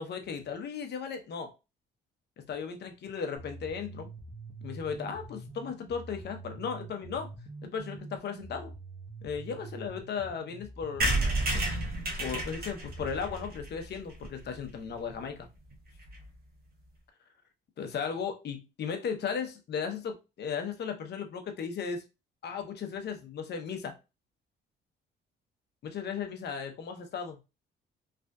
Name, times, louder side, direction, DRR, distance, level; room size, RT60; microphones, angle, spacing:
voice 1, 0.0-1.5 2.5-4.1 4.6-7.3 7.6-8.7 9.2-11.3 12.2-15.5 17.8-22.0 22.4-23.9 25.8-27.4, left 6 dB, 60° left, 0.7 m, -36 dB
sound 1, 3.4-13.5, right 3 dB, 20° right, 1.0 m, -46 dB
sound 2, 11.0-14.7 15.1-15.2 15.4-15.5 15.7-15.8 16.0-16.3, right 2 dB, 50° right, 0.9 m, -31 dB
3.3 x 2.5 x 2.2 m
cardioid pair, 90°, 20 cm